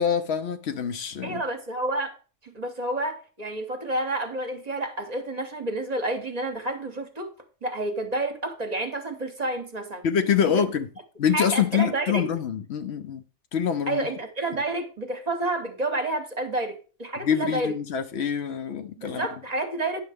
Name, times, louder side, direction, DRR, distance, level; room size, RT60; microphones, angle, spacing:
voice 1, 0.0-1.4 10.0-10.9 11.2-13.2 13.5-14.1 17.2-19.2, left 8 dB, 65° left, 0.8 m, -25 dB
voice 2, 1.2-2.2 2.4-7.3 7.6-10.0 10.4-10.5 11.3-12.3 13.9-17.8 19.0-20.0, right 2 dB, 35° right, 1.0 m, -29 dB
9.5 x 6.5 x 3.5 m
omnidirectional pair, 1.2 m